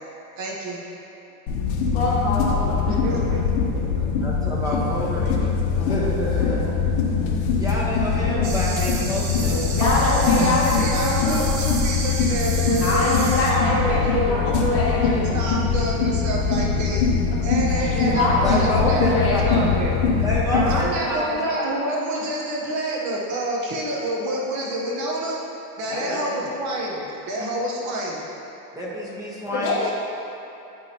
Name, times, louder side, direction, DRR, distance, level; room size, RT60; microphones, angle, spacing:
voice 1, 0.4-0.9 2.9-4.1 9.8-17.0 17.4-20.0 20.5-25.4 25.8-28.3, right 1 dB, 40° right, -3 dB, 0.9 m, -28 dB
sound 1, 1.5-20.8, left 5 dB, 55° left, 0.9 m, -22 dB
voice 2, 1.9-3.2 5.8-6.0 9.8-11.5 12.7-15.3 17.8-19.7 25.9-26.4 29.5-29.9, left 2 dB, 30° left, -5 dB, 1.3 m, -25 dB
voice 3, 3.9-6.6 7.6-9.7 18.1-19.4 20.2-21.4 25.9-26.1 28.7-29.9, equal, 10° right, -6 dB, 1.1 m, -28 dB
sound 2, 8.4-13.5, right 4 dB, 65° right, 1.2 m, -32 dB
9.4 x 5.1 x 2.9 m, 2.8 s
supercardioid pair, 140°, 45 cm